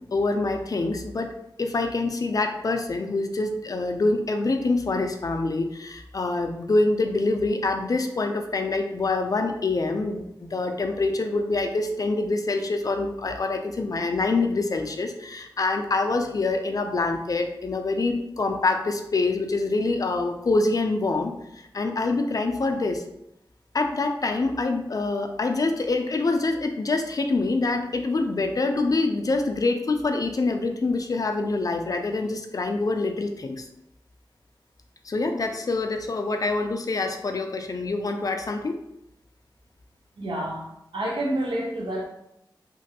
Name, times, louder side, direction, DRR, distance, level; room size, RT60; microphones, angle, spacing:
voice 1, 0.1-1.3 1.6-23.0 23.7-33.7 35.0-38.8, left 3 dB, 45° left, 5 dB, 0.4 m, -25 dB
voice 2, 40.2-42.0, right 1 dB, 80° right, -1 dB, 0.7 m, -29 dB
3.0 x 2.5 x 2.8 m, 0.80 s
wide cardioid pair, 90°, 8 cm